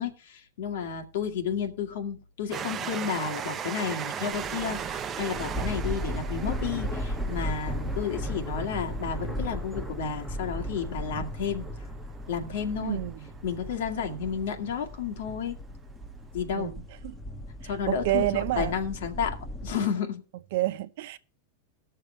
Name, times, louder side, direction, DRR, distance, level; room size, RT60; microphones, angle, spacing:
voice 1, 0.0-11.7 12.3-13.0 13.4-15.6 16.3-16.7 17.6-19.4 19.6-20.2, left 7 dB, 75° left, 2.0 m, -32 dB
Train, 2.5-13.7 14.4-14.5 14.7-14.8, right 8 dB, 20° right, 0.6 m, -39 dB
sound 1, 4.3-19.8, equal, 5° left, 1.1 m, -36 dB
voice 2, 12.8-13.1 16.5-17.1 17.9-18.7 20.5-21.2, right 16 dB, 60° right, 0.8 m, -29 dB
19.0 x 6.6 x 3.3 m
supercardioid pair, 150°, 0 cm